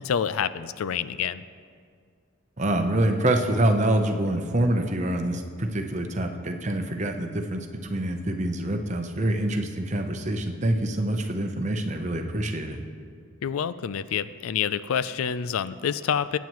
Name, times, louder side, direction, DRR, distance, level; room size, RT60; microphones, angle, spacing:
voice 1, 0.0-1.4 13.4-16.4, left 8 dB, 85° left, 15 dB, 0.4 m, -27 dB
voice 2, 2.6-12.8, right 1 dB, 35° right, 5 dB, 0.8 m, -26 dB
21.0 x 9.2 x 3.1 m, 2.1 s
head